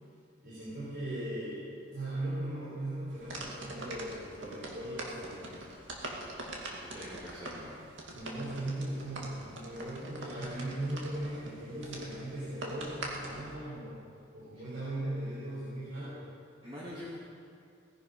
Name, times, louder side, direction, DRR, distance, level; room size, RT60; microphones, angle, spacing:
voice 1, 0.4-5.6 8.1-14.0 14.3-16.2, right 1 dB, 60° right, -9 dB, 3.8 m, -38 dB
sound 1, 3.1-13.5, right 2 dB, 80° right, 2.2 m, -43 dB
voice 2, 6.8-7.9 16.6-17.2, left 1 dB, 30° right, -8 dB, 2.4 m, -44 dB
18.0 x 10.5 x 5.4 m, 2.4 s
head